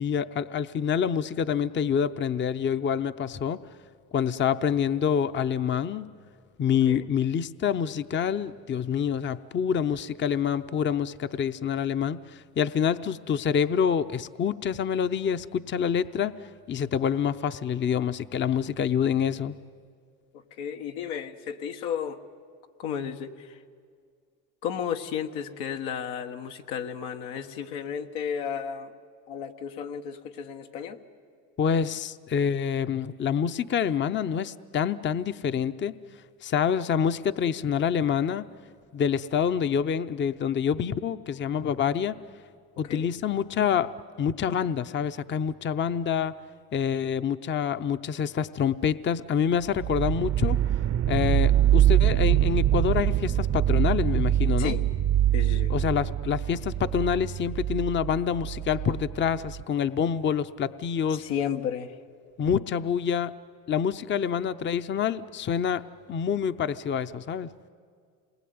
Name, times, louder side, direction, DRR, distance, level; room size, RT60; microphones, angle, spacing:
voice 1, 0.0-3.6 4.1-6.1 6.6-16.4 16.7-19.5 31.6-36.0 36.4-38.5 38.9-42.2 42.8-43.9 44.2-46.4 46.7-50.6 51.1-54.8 55.7-61.2 62.4-63.3 63.7-67.5, left 7 dB, 30° left, 13 dB, 0.7 m, -27 dB
voice 2, 20.6-22.2 22.8-23.6 24.6-28.9 29.3-31.0 42.8-43.1 54.6-54.8 55.3-55.7 61.1-61.9, left 8 dB, 90° left, 6 dB, 1.5 m, -33 dB
sound 1, 49.8-59.6, right 12 dB, 40° right, 0.6 m, -24 dB
27.5 x 21.0 x 9.5 m, 2.1 s
supercardioid pair, 90°, 36 cm